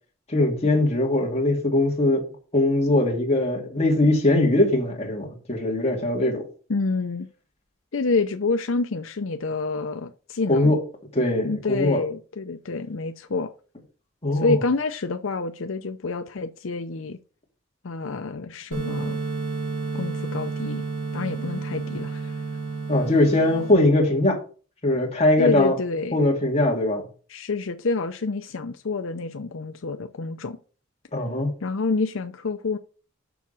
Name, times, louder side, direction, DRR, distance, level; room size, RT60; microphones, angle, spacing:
voice 1, 0.3-2.2 2.5-6.5 10.5-10.8 11.1-12.0 14.2-14.6 22.9-24.4 24.8-25.8 26.1-27.1 31.1-31.5, left 1 dB, 30° left, 2.4 m, -21 dB
voice 2, 6.7-7.3 7.9-10.8 11.4-13.5 14.3-17.2 17.8-19.2 19.9-20.8 21.1-22.4 25.4-26.2 27.3-30.6 31.6-32.8, left 3 dB, 75° left, 0.6 m, -28 dB
sound 1, 18.7-23.7, right 4 dB, 45° right, 3.0 m, -31 dB
7.1 x 6.0 x 5.6 m
head